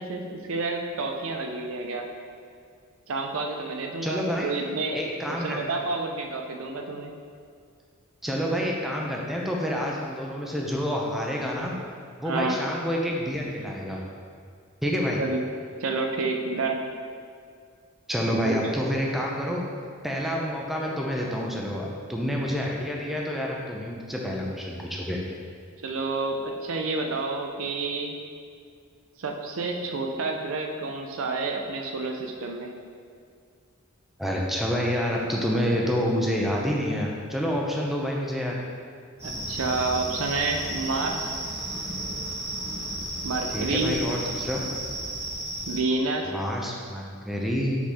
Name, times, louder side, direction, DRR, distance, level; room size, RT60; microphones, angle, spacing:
voice 1, 0.0-2.1 3.1-5.0 5.3-7.1 12.2-12.6 15.2-15.4 15.8-16.9 18.3-18.6 25.8-28.1 29.2-32.7 35.8-35.9 39.2-41.3 43.2-44.0 45.7-46.3, right 3 dB, 65° right, 3 dB, 0.6 m, -29 dB
voice 2, 4.0-4.5 4.9-5.6 8.2-11.7 12.2-14.0 14.8-15.2 18.1-19.6 20.0-25.2 34.2-38.6 43.5-44.6 46.3-47.8, equal, ahead, -2 dB, 0.6 m, -28 dB
sound 1, 39.2-45.8, right 1 dB, 30° right, 1.4 m, -33 dB
5.9 x 3.9 x 4.2 m, 2.2 s
head